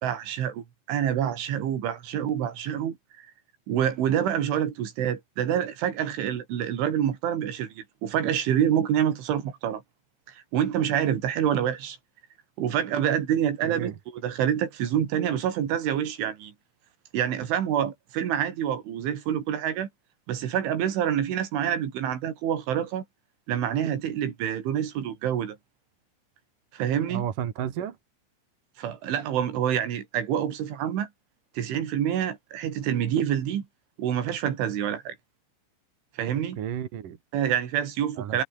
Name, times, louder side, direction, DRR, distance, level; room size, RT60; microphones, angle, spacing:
voice 1, 0.0-3.3 3.7-9.8 10.5-12.0 12.6-16.5 17.1-19.9 20.3-23.0 23.5-25.6 26.7-27.2 28.8-31.1 31.6-33.6 34.0-35.2 36.2-36.6 37.3-38.4, right 9 dB, 75° right, 5.2 m, -27 dB
voice 2, 13.6-13.9 27.1-28.0 36.6-37.2 38.2-38.4, right 10 dB, 55° right, 2.9 m, -32 dB
omnidirectional pair, 5.6 m